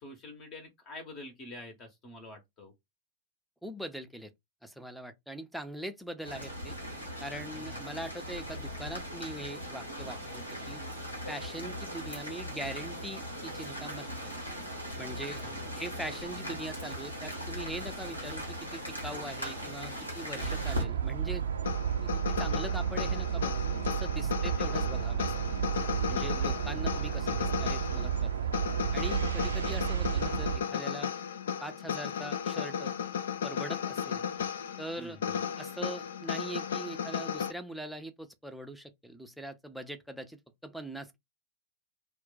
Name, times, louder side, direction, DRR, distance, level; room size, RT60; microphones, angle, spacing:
voice 1, 0.0-2.7 7.5-7.9 15.4-15.8 24.6-24.9 26.2-26.7 35.0-35.4, left 2 dB, 35° left, 0.8 m, -48 dB
voice 2, 3.6-4.3 4.6-6.8 7.2-10.8 11.3-14.1 15.0-15.5 15.8-21.4 22.0-25.3 26.1-28.3 28.9-31.1 31.6-32.9 33.4-34.2 34.8-35.2 35.6-41.2, right 1 dB, ahead, 0.5 m, -42 dB
sound 1, 6.2-20.8, equal, 90° left, 1.0 m, -39 dB
sound 2, 20.4-30.6, right 8 dB, 70° right, 0.4 m, -32 dB
sound 3, 21.7-37.5, left 7 dB, 65° left, 0.3 m, -35 dB
2.3 x 2.2 x 3.8 m
figure-of-eight pair, 90°, 0 cm